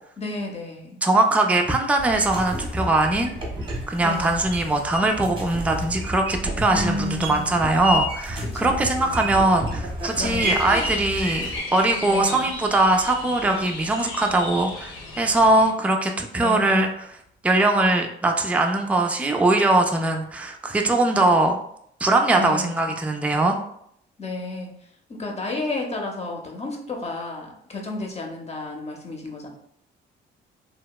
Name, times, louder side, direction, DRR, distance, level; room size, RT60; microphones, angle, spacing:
voice 1, 0.2-1.0 4.0-4.6 6.7-7.6 8.5-9.3 10.2-10.8 12.0-12.5 16.4-16.9 22.3-23.0 24.2-24.7 25.1-29.5, left 2 dB, 35° left, 1 dB, 0.6 m, -32 dB
voice 2, 1.0-3.4 3.9-16.9 17.4-21.6 22.0-23.6, right 2 dB, 5° right, 3 dB, 0.3 m, -21 dB
sound 1, 2.0-11.6, equal, 25° right, 0.8 m, -31 dB
sound 2, 10.4-15.7, left 2 dB, 90° left, 0.5 m, -33 dB
2.8 x 2.1 x 2.2 m, 0.70 s
cardioid pair, 90°, 20 cm